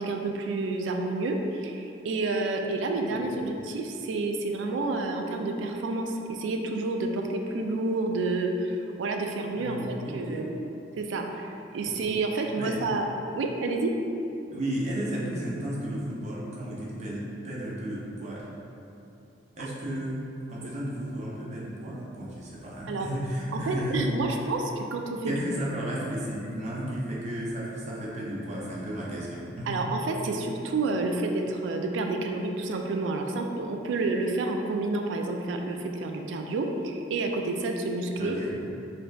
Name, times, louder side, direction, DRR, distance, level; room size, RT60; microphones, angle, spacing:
voice 1, 0.0-10.5 11.0-13.1 13.3-13.9 22.9-23.1 23.5-25.4 29.7-38.4, right 2 dB, 85° right, 3 dB, 0.3 m, -29 dB
voice 2, 9.6-10.5 11.8-11.9 12.6-12.8 14.5-18.5 19.6-24.1 25.2-29.9 38.2-38.7, right 1 dB, 40° right, -5 dB, 0.6 m, -33 dB
4.2 x 2.6 x 2.3 m, 2.8 s
head